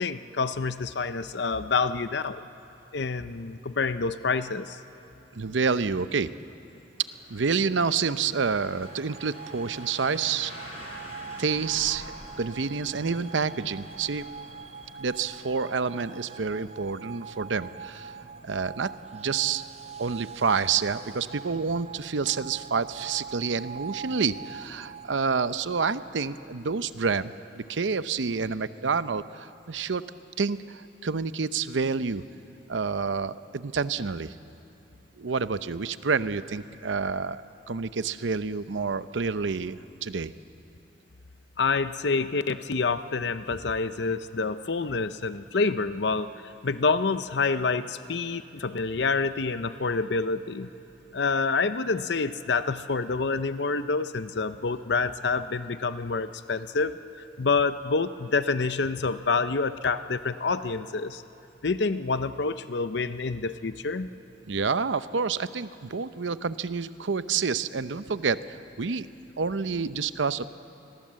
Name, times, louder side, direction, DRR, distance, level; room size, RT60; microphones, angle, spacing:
voice 1, 0.0-2.4 2.9-4.8 41.6-50.7 51.1-61.2 61.6-64.1, left 4 dB, 65° left, 12 dB, 0.7 m, -27 dB
voice 2, 5.3-6.3 7.3-10.5 11.4-12.1 12.4-14.2 15.0-18.1 18.4-19.6 20.0-30.1 30.4-32.2 32.7-34.3 35.2-40.3 64.5-69.1 69.4-70.4, right 5 dB, 90° right, 13 dB, 0.7 m, -28 dB
sound 1, 7.0-15.7, equal, 35° left, 6.5 m, -47 dB
sound 2, 8.8-25.1, right 6 dB, 35° right, 0.5 m, -43 dB
28.0 x 21.5 x 7.6 m, 2.9 s
head